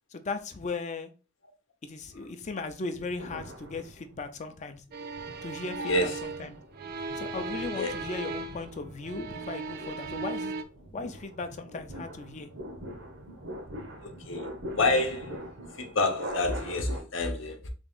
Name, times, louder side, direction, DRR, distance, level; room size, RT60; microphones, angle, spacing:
voice 1, 0.1-1.1 1.8-4.8 5.4-6.6 7.2-10.6 10.9-12.5, left 3 dB, 40° left, 0.4 m, -37 dB
sound 1, 2.9-4.4 4.9-17.0, equal, 85° right, 0.9 m, -43 dB
sound 2, 4.9-8.7 9.0-10.6, right 3 dB, 50° right, 0.4 m, -37 dB
voice 2, 5.8-6.2 7.8-8.0 9.1-9.2 14.0-14.5 14.8-15.4 15.8-17.7, left 2 dB, 85° left, 0.8 m, -28 dB
3.5 x 2.4 x 3.5 m
head